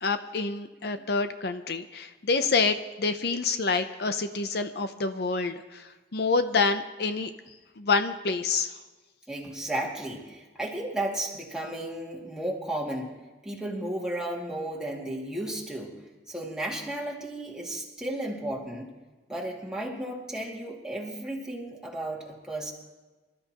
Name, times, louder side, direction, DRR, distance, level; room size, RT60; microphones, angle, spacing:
voice 1, 0.0-7.3 7.8-8.8, left 4 dB, 60° left, 9 dB, 0.6 m, -27 dB
voice 2, 9.3-18.9 19.3-22.7, right 1 dB, 5° right, -3 dB, 2.3 m, -34 dB
25.5 x 13.5 x 3.0 m, 1.2 s
head